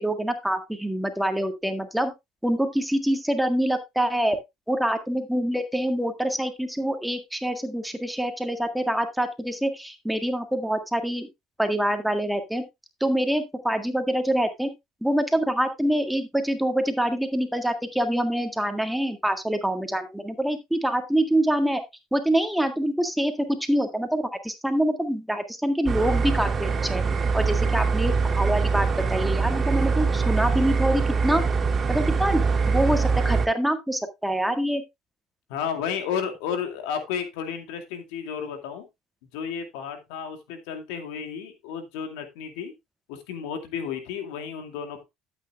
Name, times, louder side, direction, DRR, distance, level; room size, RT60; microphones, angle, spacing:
voice 1, 0.0-2.1 2.4-4.4 4.7-11.3 11.6-12.6 13.0-14.7 15.0-21.8 22.1-27.0 27.3-31.4 31.9-34.8, right 1 dB, 5° right, 7 dB, 1.7 m, -25 dB
sound 1, 25.9-33.5, right 4 dB, 30° right, 1.6 m, -23 dB
voice 2, 35.5-38.8 39.3-42.7 43.1-45.0, left 7 dB, 85° left, 6 dB, 2.3 m, -32 dB
12.5 x 8.6 x 2.4 m, 0.20 s
supercardioid pair, 100°, 0 cm